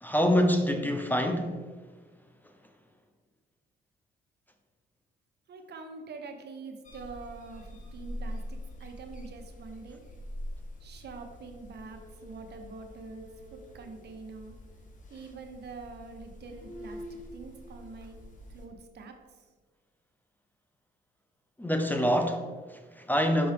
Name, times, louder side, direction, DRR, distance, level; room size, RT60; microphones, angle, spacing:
voice 1, 0.0-1.7 21.6-23.5, equal, 10° left, 0.6 m, -26 dB
voice 2, 5.5-10.0 10.8-13.2 13.5-14.5 15.1-18.2 18.5-19.4, right 4 dB, 55° right, 0.9 m, -45 dB
sound 1, 6.8-18.7, equal, 40° left, 1.2 m, -44 dB
5.5 x 5.3 x 3.4 m
cardioid pair, 90°, 20 cm